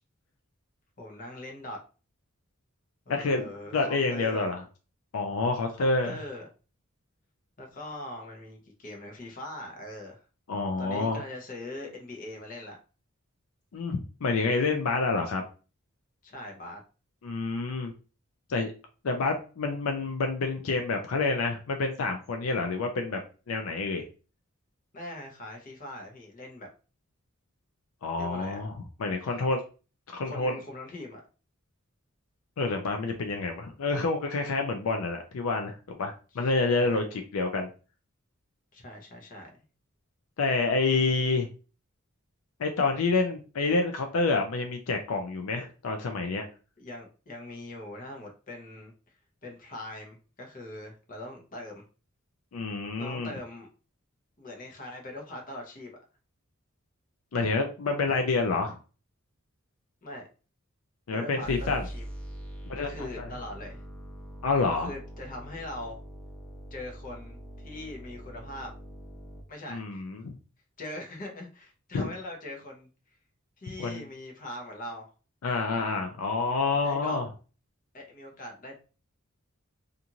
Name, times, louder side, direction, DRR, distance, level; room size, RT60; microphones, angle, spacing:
voice 1, 1.0-1.8 3.1-4.5 5.8-6.5 7.6-10.2 10.8-12.8 16.2-16.8 24.9-26.7 28.2-28.7 30.2-31.2 36.3-37.0 38.7-39.6 46.8-49.2 49.4-51.8 53.0-53.7 54.4-56.0 60.0-60.3 61.1-62.1 62.8-63.8 64.7-66.0 66.7-68.7 69.5-70.0 70.8-73.2 73.6-75.1 76.8-77.2 77.9-78.7, left 1 dB, 40° left, 0 dB, 0.8 m, -41 dB
voice 2, 3.1-4.6 5.1-6.2 10.5-11.2 13.7-15.4 17.2-17.9 18.5-18.7 19.0-23.2 23.5-24.0 28.0-29.6 30.1-30.6 32.6-37.7 40.4-41.5 42.6-46.5 52.5-53.3 57.3-58.8 61.1-61.9 62.7-63.3 64.4-64.9 69.7-70.3 71.9-72.1 73.8-74.0 75.4-77.2, left 3 dB, 75° left, 4 dB, 0.4 m, -28 dB
sound 1, 61.4-69.4, equal, 5° left, 0.5 m, -43 dB
2.5 x 2.5 x 2.8 m, 0.35 s
head